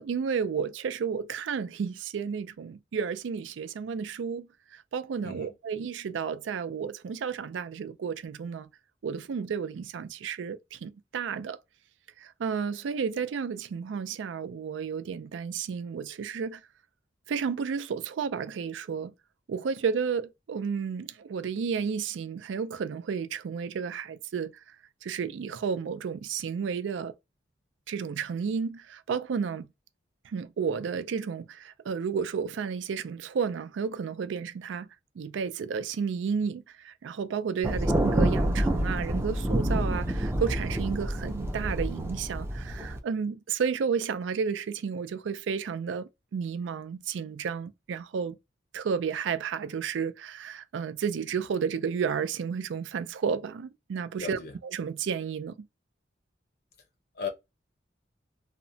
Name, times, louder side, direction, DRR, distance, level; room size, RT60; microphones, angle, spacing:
voice 1, 0.0-4.5 4.7-8.7 9.0-11.6 12.2-16.6 17.3-19.1 19.5-24.5 25.0-27.1 27.9-29.7 30.3-34.9 35.2-48.4 48.7-55.5, right 6 dB, 85° right, 0.3 m, -32 dB
voice 2, 5.2-5.5 37.7-37.8 54.2-54.5 57.2-57.3, left 6 dB, 60° left, 0.7 m, -36 dB
Thunder, 37.6-43.0, right 1 dB, 15° right, 0.4 m, -28 dB
2.8 x 2.1 x 2.6 m
head